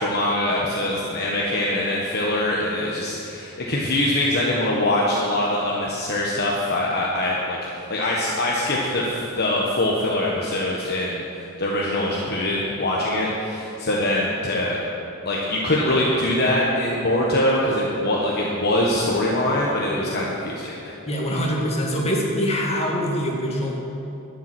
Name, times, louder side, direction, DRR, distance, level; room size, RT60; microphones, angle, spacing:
voice 1, 0.0-7.6 7.9-14.8 15.2-20.8, left 1 dB, 45° left, -4 dB, 1.4 m, -23 dB
voice 2, 21.1-23.7, equal, 30° left, -2 dB, 2.3 m, -24 dB
12.0 x 7.2 x 9.7 m, 2.8 s
head